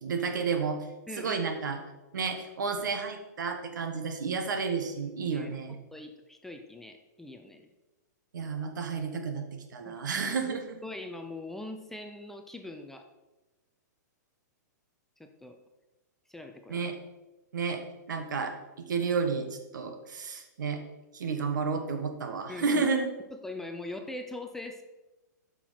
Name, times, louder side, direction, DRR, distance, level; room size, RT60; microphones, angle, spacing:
voice 1, 0.0-0.9 1.2-1.8 2.1-5.8 8.3-9.4 9.7-10.8 16.7-17.0 17.5-17.8 18.1-20.8 21.1-23.1, right 5 dB, 85° right, 6 dB, 1.4 m, -31 dB
voice 2, 1.1-1.5 5.3-5.5 5.9-7.7 9.8-10.6 10.8-13.1 15.2-15.6 16.3-16.8 22.5-22.9 23.4-24.8, left 2 dB, 5° left, 5 dB, 0.5 m, -42 dB
8.8 x 6.0 x 4.2 m, 1.1 s
hypercardioid pair, 150°, 10 cm